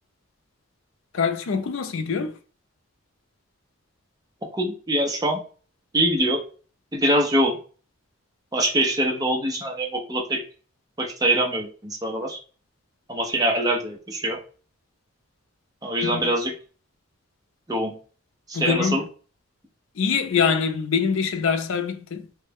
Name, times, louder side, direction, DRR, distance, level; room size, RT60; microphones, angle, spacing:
voice 1, 1.1-2.3 16.0-16.2 18.5-19.0 20.0-22.4, left 6 dB, 70° left, 0.4 m, -24 dB
voice 2, 4.5-5.4 5.9-6.4 6.9-7.6 8.5-10.4 11.0-12.4 13.1-14.4 15.8-16.5 17.7-18.0 18.5-19.0, right 1 dB, 15° right, 0.6 m, -23 dB
3.1 x 2.2 x 3.4 m
head